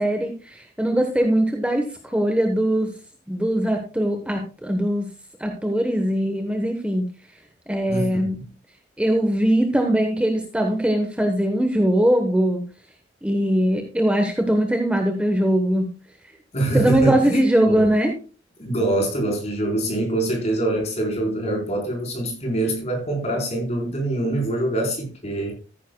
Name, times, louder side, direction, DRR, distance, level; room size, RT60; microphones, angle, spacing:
voice 1, 0.0-2.9 3.3-5.1 5.4-7.0 7.7-8.4 9.0-12.6 13.2-15.9 16.7-18.1, right 1 dB, 5° right, 1.0 m, -21 dB
voice 2, 7.9-8.2 16.5-17.4 17.7-17.9 18.6-25.5, right 2 dB, 35° left, 4.0 m, -24 dB
14.0 x 10.0 x 2.2 m
head